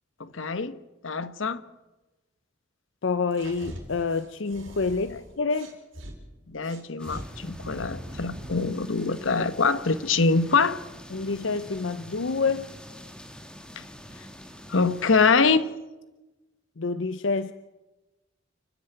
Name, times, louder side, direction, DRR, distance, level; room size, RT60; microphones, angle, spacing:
voice 1, 0.2-0.8 1.0-1.6 6.5-10.8 13.8-13.9 14.7-15.7, left 4 dB, 85° left, 1.1 m, -24 dB
voice 2, 3.0-5.8 11.1-12.7 16.8-17.5, left 4 dB, 70° left, 0.7 m, -28 dB
sound 1, 3.3-6.1 6.6-8.7, equal, 80° right, 5.0 m, -42 dB
sound 2, 7.0-15.3, equal, 5° left, 2.1 m, -45 dB
29.5 x 10.0 x 9.1 m
head